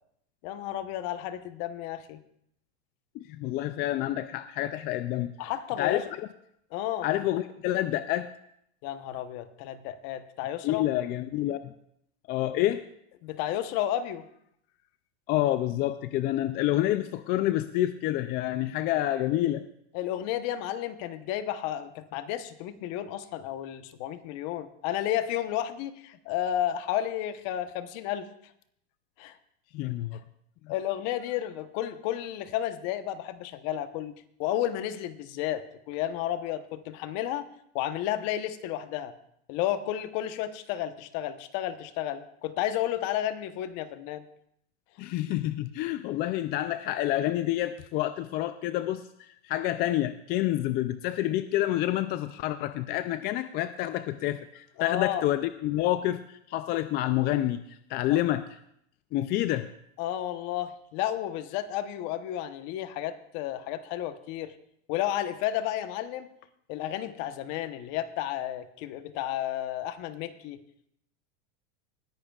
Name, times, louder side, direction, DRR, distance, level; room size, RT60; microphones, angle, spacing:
voice 1, 0.4-2.2 5.4-6.0 6.7-7.1 8.8-10.8 13.2-14.3 19.9-28.3 29.2-29.4 30.1-30.2 30.7-37.5 37.7-39.1 39.5-44.2 54.8-55.3 58.1-58.2 60.0-64.5 64.9-66.3 66.7-70.6, left 12 dB, 50° left, 11 dB, 1.0 m, -32 dB
voice 2, 3.1-5.3 5.8-6.0 7.0-8.3 10.6-11.7 12.3-12.8 15.3-19.6 29.7-30.2 30.6-30.7 45.0-58.4 59.1-59.7, left 14 dB, 30° left, 12 dB, 0.4 m, -28 dB
19.5 x 14.0 x 2.4 m, 0.72 s
supercardioid pair, 135°, 34 cm